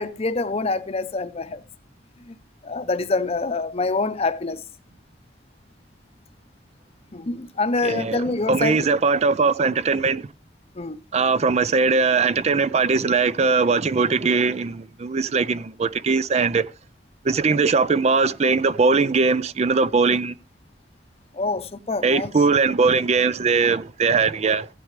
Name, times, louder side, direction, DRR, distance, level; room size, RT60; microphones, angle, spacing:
voice 1, 0.0-1.6 2.3-2.4 2.6-4.6 7.1-8.8 10.8-11.0 21.3-22.3, left 3 dB, 35° left, 0.7 m, -26 dB
voice 2, 7.8-10.3 11.1-16.7 17.2-20.3 22.0-24.7, right 4 dB, 35° right, 0.4 m, -20 dB
16.0 x 8.5 x 3.3 m
head